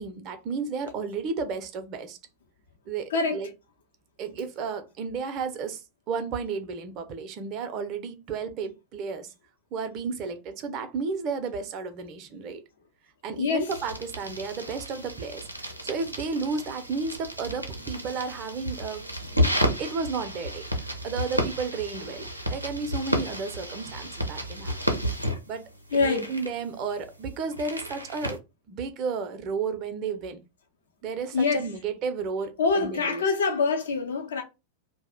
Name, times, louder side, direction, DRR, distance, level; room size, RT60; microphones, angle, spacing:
voice 1, 0.0-2.2 2.9-3.5 4.2-5.8 6.1-9.3 9.7-12.6 13.2-19.1 19.3-19.5 19.8-24.7 25.5-25.6 26.0-28.4 28.7-30.4 31.0-33.2, right 5 dB, 40° right, 0.5 m, -33 dB
voice 2, 3.1-3.4 13.4-13.8 25.9-26.3 31.3-31.7 32.6-34.4, left 4 dB, 65° left, 0.7 m, -25 dB
sound 1, 13.7-28.4, equal, 90° right, 0.5 m, -32 dB
2.3 x 2.0 x 3.5 m
figure-of-eight pair, 90°, 0 cm